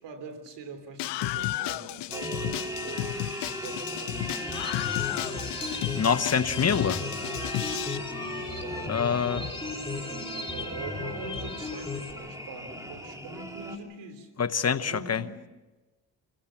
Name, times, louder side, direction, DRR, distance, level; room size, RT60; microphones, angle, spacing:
voice 1, 0.0-4.4 8.6-9.0 9.3-14.3 14.8-15.5, right 4 dB, 80° right, 8 dB, 3.2 m, -43 dB
Screaming, 1.0-8.0, left 17 dB, 80° left, 0.6 m, -33 dB
sound 1, 2.1-13.8, equal, 10° right, 3.6 m, -38 dB
sound 2, 4.1-12.1, left 3 dB, 10° left, 3.5 m, -36 dB
voice 2, 6.0-7.0 8.9-9.4 14.4-15.2, left 6 dB, 35° left, 10 dB, 1.0 m, -25 dB
27.5 x 16.0 x 7.3 m, 1.2 s
supercardioid pair, 70°, 41 cm